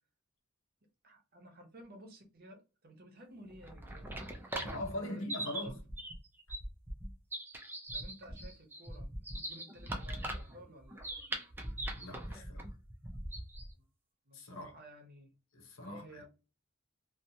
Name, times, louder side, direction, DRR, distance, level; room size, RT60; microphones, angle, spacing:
voice 1, 1.0-4.2 4.5-5.7 7.9-11.0 14.3-15.3 15.8-16.2, right 1 dB, 45° right, 0.8 m, -54 dB
sound 1, 3.5-13.7, right 1 dB, 10° right, 0.4 m, -41 dB
voice 2, 4.6-5.8 11.9-12.7 14.3-14.7 15.5-16.2, left 1 dB, 75° left, 0.8 m, -42 dB
2.9 x 2.1 x 2.6 m
head